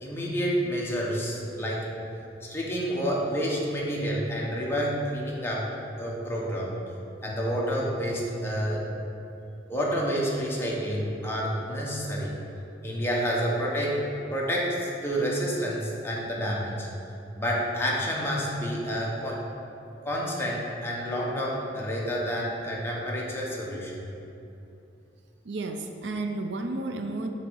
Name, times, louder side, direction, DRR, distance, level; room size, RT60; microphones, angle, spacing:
voice 1, 0.0-1.9 2.4-5.7 6.0-6.7 7.2-8.8 9.7-12.3 12.8-14.0 14.3-16.9 17.3-19.4 20.0-24.0, equal, 15° left, -4 dB, 1.2 m, -29 dB
voice 2, 25.4-27.3, right 2 dB, 80° right, 6 dB, 0.5 m, -32 dB
6.9 x 4.1 x 6.3 m, 2.8 s
head